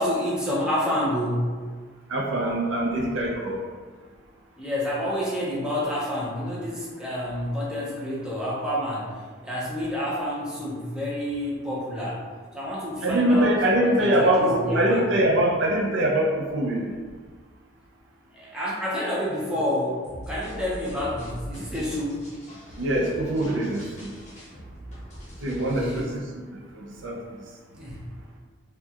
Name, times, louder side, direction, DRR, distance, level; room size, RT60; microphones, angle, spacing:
voice 1, 0.0-1.6 4.6-9.1 9.4-12.2 12.5-15.1 18.3-22.3 25.6-26.1 27.7-28.0, left 1 dB, 5° right, -7 dB, 0.6 m, -29 dB
voice 2, 2.1-3.6 13.0-16.9 22.8-24.1 25.4-26.2 26.7-27.2, right 1 dB, 60° right, -1 dB, 0.5 m, -23 dB
sound 1, 20.0-26.0, equal, 35° left, 0.9 m, -41 dB
4.4 x 2.3 x 2.8 m, 1.5 s
head